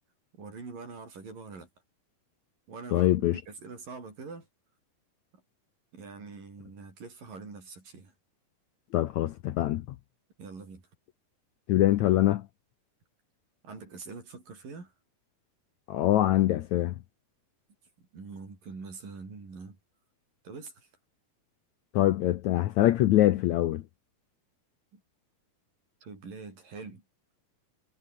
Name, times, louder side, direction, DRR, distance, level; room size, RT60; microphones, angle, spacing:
voice 1, 0.4-1.7 2.7-4.5 5.9-8.1 10.4-10.8 13.6-14.9 18.1-19.8 20.4-20.9 24.9-25.0 26.0-27.0, right 4 dB, 70° right, 8.4 m, -44 dB
voice 2, 2.9-3.4 8.9-9.9 11.7-12.5 15.9-17.0 21.9-23.8, left 14 dB, 70° left, 1.8 m, -24 dB
omnidirectional pair, 4.1 m